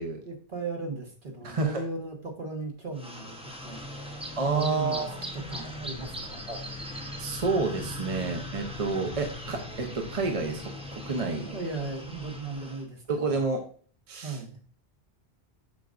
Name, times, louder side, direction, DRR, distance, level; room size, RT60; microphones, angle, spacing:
voice 1, 0.2-3.8 4.4-6.4 11.4-13.4 14.2-14.6, right 3 dB, 55° right, 1 dB, 1.6 m, -36 dB
voice 2, 1.4-1.8 4.4-5.2 6.5-6.6 7.2-10.6 10.9-11.5 13.1-13.6 14.1-14.6, right 3 dB, 35° right, 3 dB, 0.8 m, -29 dB
sound 1, 3.0-12.8, left 1 dB, 5° right, 0.9 m, -39 dB
7.3 x 5.9 x 2.5 m, 0.44 s
omnidirectional pair, 1.1 m